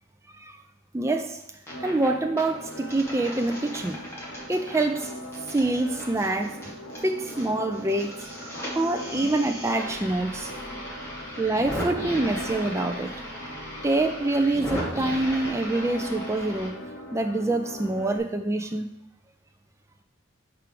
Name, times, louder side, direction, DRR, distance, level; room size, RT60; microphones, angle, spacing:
voice 1, 0.9-1.4 1.8-4.0 4.5-5.1 5.5-10.5 11.4-13.1 13.8-16.8 17.1-18.9, right 2 dB, 15° right, 5 dB, 0.3 m, -26 dB
sound 1, 1.5-2.1 2.4-7.5 7.7-16.7, equal, 10° left, 1.2 m, -37 dB
sound 2, 1.7-18.2, equal, 65° left, 1.2 m, -40 dB
4.7 x 4.7 x 5.1 m, 0.88 s
head